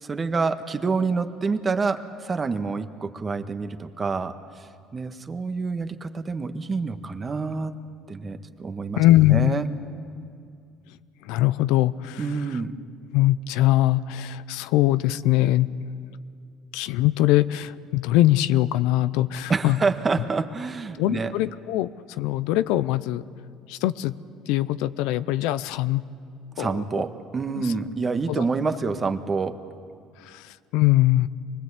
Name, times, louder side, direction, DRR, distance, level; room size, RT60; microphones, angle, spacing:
voice 1, 0.0-4.7 4.9-7.8 8.1-9.0 9.3-9.7 12.2-12.7 19.5-21.3 26.6-29.6, right 4 dB, 30° right, 8 dB, 1.5 m, -27 dB
voice 2, 9.0-9.5 11.3-12.2 13.1-15.7 16.7-19.8 21.0-21.9 22.2-23.2 23.7-24.1 24.5-26.0 26.6-26.7 28.3-28.4 30.7-31.3, left 15 dB, 80° left, 15 dB, 0.6 m, -21 dB
25.0 x 20.0 x 8.3 m, 2.3 s
supercardioid pair, 75°, 0 cm